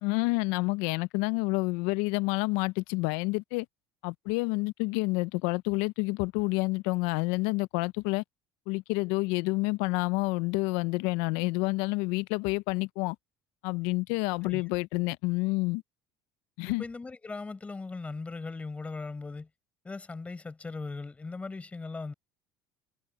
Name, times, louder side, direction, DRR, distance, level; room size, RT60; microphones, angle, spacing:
voice 1, 0.0-3.7 4.0-8.2 8.7-13.2 13.6-15.8 16.6-16.8, left 24 dB, 80° left, 0.5 m, -29 dB
voice 2, 16.7-19.5 19.8-22.1, left 3 dB, 15° left, 4.9 m, -39 dB
supercardioid pair, 115°, 8 cm